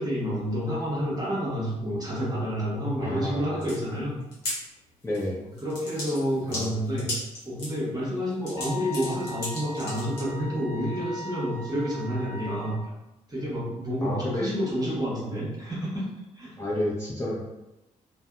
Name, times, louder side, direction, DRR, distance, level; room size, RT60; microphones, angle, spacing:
voice 1, 0.0-4.2 5.6-7.1 7.4-12.8 13.3-16.1 16.3-16.6, equal, 20° right, -5 dB, 1.0 m, -29 dB
voice 2, 3.0-3.6 5.0-5.4 6.5-6.7 14.0-14.5 16.6-17.4, left 1 dB, 15° left, -7 dB, 0.8 m, -30 dB
sound 1, 3.6-3.8 4.2-4.6 5.1-5.3 5.6-7.7 8.3-10.2, left 1 dB, 75° left, 0.9 m, -35 dB
Wind instrument woodwind instrument, 8.6-12.8, left 1 dB, 40° left, 0.4 m, -40 dB
2.6 x 2.2 x 2.3 m, 0.97 s
hypercardioid pair, 40°, 18 cm